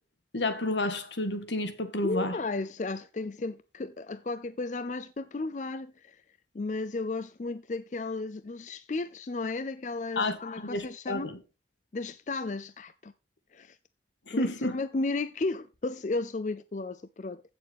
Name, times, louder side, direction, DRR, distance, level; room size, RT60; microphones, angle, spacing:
voice 1, 0.3-2.4 10.2-11.4 14.3-14.8, left 2 dB, 85° left, 1.8 m, -30 dB
voice 2, 2.0-6.2 6.5-11.3 11.9-13.1 13.5-13.8 14.3-17.5, left 3 dB, 40° left, 0.4 m, -34 dB
15.5 x 7.0 x 3.5 m
head